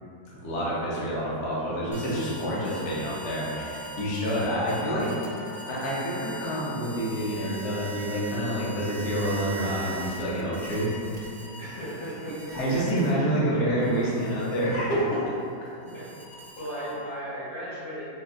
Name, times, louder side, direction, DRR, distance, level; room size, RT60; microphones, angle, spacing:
voice 1, 0.4-10.9 12.5-15.2, equal, 60° left, -7 dB, 0.7 m, -28 dB
sound 1, 0.9-6.5, left 1 dB, 65° right, 1.0 m, -44 dB
sound 2, 1.9-13.4 13.8-17.2, right 2 dB, 85° right, 1.3 m, -43 dB
voice 2, 11.6-12.6 13.4-13.6 15.9-16.1 16.6-18.0, equal, 90° left, -13 dB, 2.1 m, -36 dB
4.0 x 2.1 x 2.4 m, 2.6 s
omnidirectional pair, 1.9 m